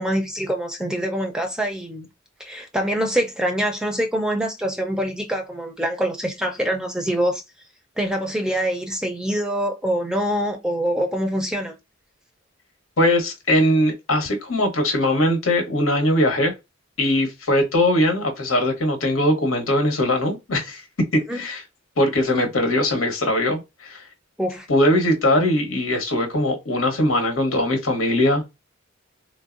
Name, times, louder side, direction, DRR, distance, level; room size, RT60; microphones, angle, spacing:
voice 1, 0.0-2.1 2.4-7.4 8.0-11.7 21.3-21.4 24.4-24.7, equal, 5° right, 0.4 m, -25 dB
voice 2, 13.0-16.5 17.0-20.8 21.1-21.6 22.0-24.0 24.7-28.4, left 1 dB, 90° left, 1.0 m, -20 dB
3.7 x 2.0 x 2.4 m
head